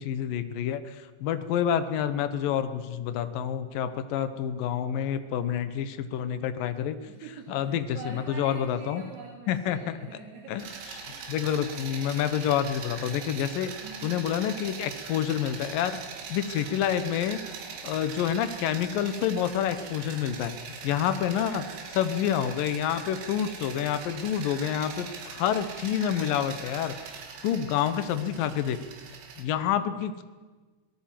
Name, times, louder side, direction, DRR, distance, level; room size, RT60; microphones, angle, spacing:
voice 1, 0.0-7.0 7.5-9.0 9.5-10.0 10.5-10.6 11.3-13.7 14.0-16.0 16.3-17.4 17.8-21.6 22.0-27.0 27.4-28.8 29.4-30.2, left 9 dB, 70° left, 11 dB, 2.2 m, -28 dB
voice 2, 7.1-10.6 11.1-12.0 13.8-14.2 21.5-22.2, right 4 dB, 65° right, -1 dB, 4.8 m, -46 dB
sound 1, 10.6-29.4, right 5 dB, 85° right, 5.0 m, -41 dB
24.0 x 18.5 x 7.6 m, 1.3 s
omnidirectional pair, 5.3 m